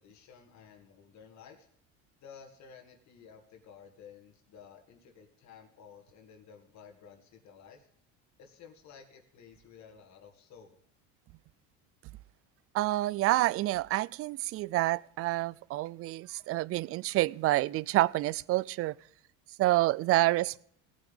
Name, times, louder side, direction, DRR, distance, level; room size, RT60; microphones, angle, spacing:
voice 1, 0.0-1.7 2.2-7.9 8.4-10.8, left 7 dB, 50° left, 2.4 m, -54 dB
voice 2, 12.7-18.9 19.6-20.6, right 17 dB, 40° right, 0.4 m, -28 dB
18.5 x 8.8 x 3.6 m
cardioid pair, 130°, 35 cm